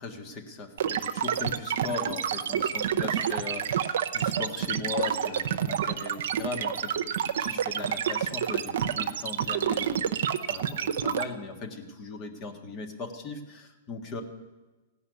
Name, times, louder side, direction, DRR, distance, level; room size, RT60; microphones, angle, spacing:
voice 1, 0.0-10.0 10.5-14.2, left 3 dB, 35° left, 3 dB, 1.8 m, -38 dB
sound 1, 0.8-11.2, right 9 dB, 70° right, 0.7 m, -28 dB
16.5 x 5.6 x 9.5 m, 1.2 s
hypercardioid pair, 130°, 0 cm